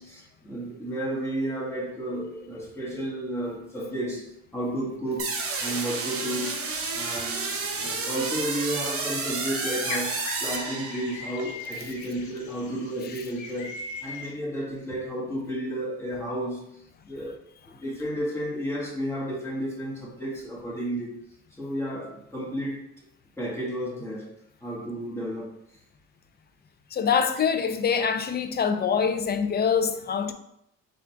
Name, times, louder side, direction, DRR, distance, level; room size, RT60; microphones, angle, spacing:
voice 1, 0.0-6.6 6.9-13.7 14.0-21.1 21.5-22.8 23.4-24.3 24.6-25.8, right 1 dB, 10° left, 1.4 m, -32 dB
sound 1, 5.2-11.4, right 4 dB, 50° right, 0.9 m, -31 dB
sound 2, 7.9-14.3, left 3 dB, 75° left, 0.9 m, -40 dB
voice 2, 26.9-30.3, left 6 dB, 35° left, 0.4 m, -24 dB
3.7 x 2.5 x 4.4 m
cardioid pair, 90°, 30 cm